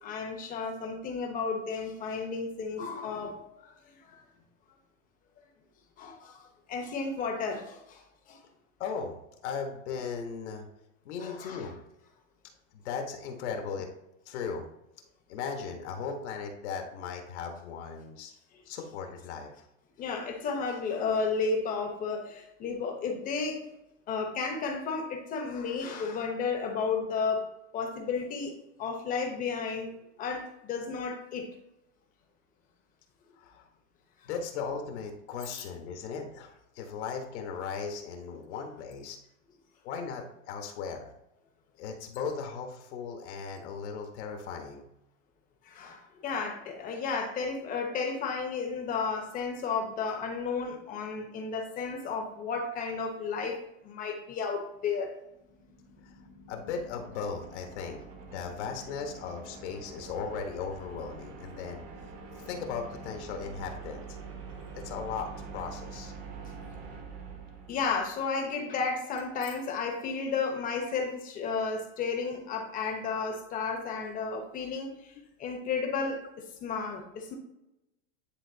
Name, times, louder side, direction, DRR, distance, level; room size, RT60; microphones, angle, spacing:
voice 1, 0.0-4.2 6.0-8.0 8.3-8.4 11.2-11.7 20.0-23.6 24.1-28.5 28.8-29.9 30.2-31.5 45.6-55.1 67.7-75.1 75.4-77.3, left 5 dB, 20° left, 3 dB, 0.9 m, -33 dB
voice 2, 8.8-9.2 9.4-10.6 11.0-11.7 12.7-13.9 14.3-14.6 15.3-18.3 18.7-19.6 33.4-33.6 34.3-39.2 39.8-41.1 41.8-44.9 56.5-58.0 58.3-61.8 62.3-64.0 64.7-66.1, left 6 dB, 65° left, 3 dB, 1.2 m, -37 dB
sound 1, 55.1-68.3, right 4 dB, 45° right, 1.2 m, -45 dB
10.0 x 3.6 x 2.7 m, 0.88 s
supercardioid pair, 165°, 37 cm